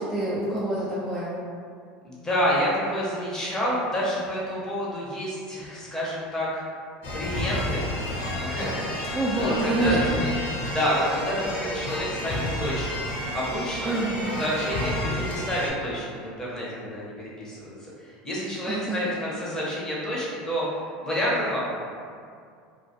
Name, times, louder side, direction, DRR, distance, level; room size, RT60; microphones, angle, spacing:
voice 1, 0.0-1.4 9.1-10.2 13.8-14.4 18.7-19.0, right 2 dB, 10° right, -8 dB, 0.3 m, -26 dB
voice 2, 2.0-6.6 7.1-7.9 8.4-10.3 10.7-13.0 13.3-14.0 14.3-21.6, equal, 15° left, -6 dB, 0.7 m, -29 dB
sound 1, 7.0-15.7, left 1 dB, 50° left, 0.7 m, -30 dB
2.1 x 2.1 x 2.7 m, 2.3 s
supercardioid pair, 115°, 4 cm